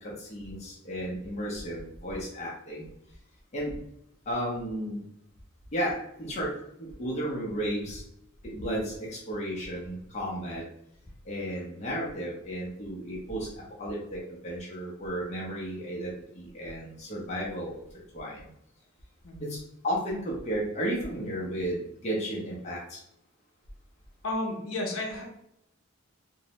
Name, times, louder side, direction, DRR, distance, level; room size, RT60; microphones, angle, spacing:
voice 1, 0.0-2.9 3.5-3.7 4.3-5.0 5.7-6.5 6.8-8.0 8.4-10.6 11.2-13.5 13.8-17.8 18.1-18.5 19.5-19.6 19.8-23.0, equal, 30° left, -4 dB, 0.5 m, -33 dB
voice 2, 24.2-25.2, left 2 dB, 75° left, 0 dB, 0.6 m, -32 dB
2.6 x 2.0 x 2.9 m, 0.79 s
head